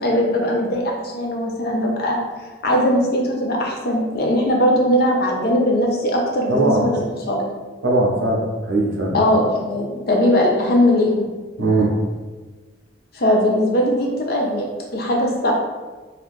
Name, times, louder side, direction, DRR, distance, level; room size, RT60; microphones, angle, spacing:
voice 1, 0.0-2.2 2.6-7.4 9.1-11.2 13.1-14.7 14.9-15.5, left 1 dB, 55° left, 0 dB, 0.6 m, -19 dB
voice 2, 6.5-6.9 7.8-9.2 11.6-11.9, right 2 dB, 80° right, -2 dB, 0.7 m, -19 dB
2.8 x 2.4 x 3.4 m, 1.3 s
head